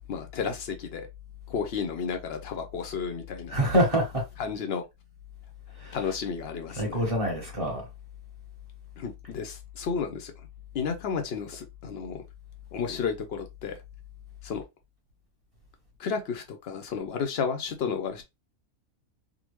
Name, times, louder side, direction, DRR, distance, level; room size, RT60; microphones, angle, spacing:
voice 1, 0.1-1.1 1.5-3.5 4.4-4.8 5.9-7.1 9.0-10.3 10.7-12.2 12.7-13.8 14.4-14.6 16.0-18.2, left 6 dB, 60° left, 0.7 m, -32 dB
voice 2, 3.5-4.2 5.7-6.1 6.7-7.8, right 1 dB, 25° right, 1.1 m, -26 dB
3.7 x 2.1 x 3.0 m
omnidirectional pair, 1.5 m